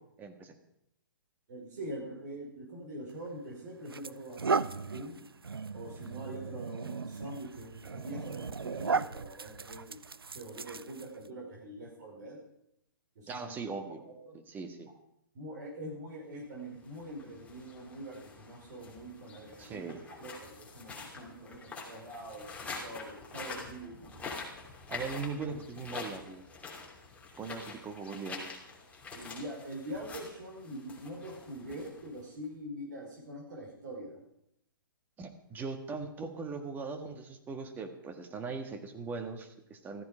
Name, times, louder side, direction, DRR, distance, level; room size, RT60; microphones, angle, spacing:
voice 1, 0.2-0.5 13.3-14.0 14.5-14.9 19.6-20.0 24.9-26.4 27.4-28.6 35.2-40.0, right 4 dB, 15° right, 6 dB, 1.6 m, -40 dB
voice 2, 1.5-5.2 5.7-10.0 10.3-12.4 13.2-13.5 13.9-14.0 14.2-14.4 15.3-24.5 29.1-34.2, right 1 dB, 55° right, -2 dB, 5.4 m, -44 dB
sound 1, 3.1-3.3 3.9-11.3, right 5 dB, 85° right, 0.5 m, -36 dB
sound 2, 16.7-32.4, left 4 dB, 10° left, 2.9 m, -46 dB
15.0 x 14.0 x 5.1 m, 0.77 s
figure-of-eight pair, 125°, 12 cm